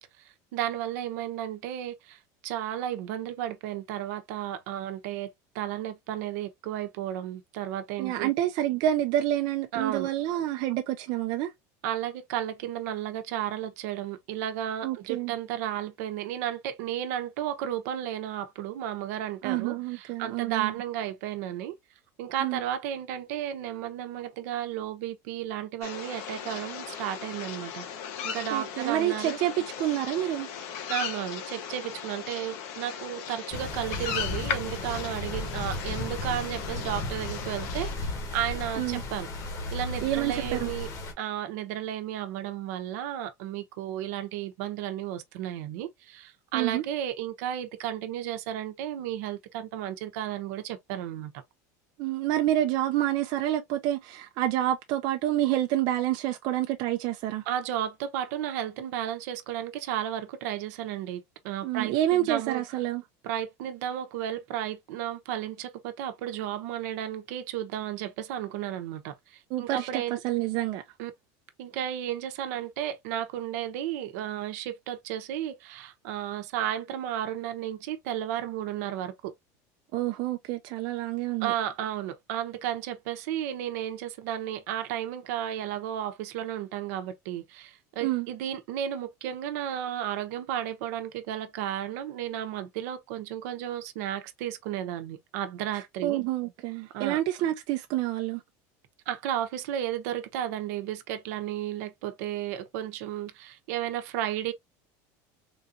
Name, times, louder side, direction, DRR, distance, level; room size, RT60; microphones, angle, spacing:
voice 1, 0.5-8.3 9.7-10.1 11.8-21.8 22.2-27.9 28.2-29.4 30.9-39.3 39.7-40.9 41.2-51.3 57.5-62.6 63.2-70.2 71.0-71.1 71.6-79.3 81.4-96.2 96.9-97.2 99.1-104.5, right 11 dB, 80° right, 0.8 m, -33 dB
voice 2, 8.0-11.5 14.8-15.3 19.4-20.8 22.4-22.6 28.5-30.5 38.8-39.0 40.0-40.7 46.5-46.8 52.0-57.4 61.6-63.0 69.5-70.8 79.9-81.5 88.0-88.3 95.7-98.4, right 13 dB, 55° right, 0.5 m, -28 dB
sound 1, 25.8-38.0, left 7 dB, 75° left, 0.9 m, -37 dB
sound 2, 33.5-41.1, left 2 dB, 40° left, 1.1 m, -35 dB
3.8 x 2.5 x 2.6 m
supercardioid pair, 145°, 9 cm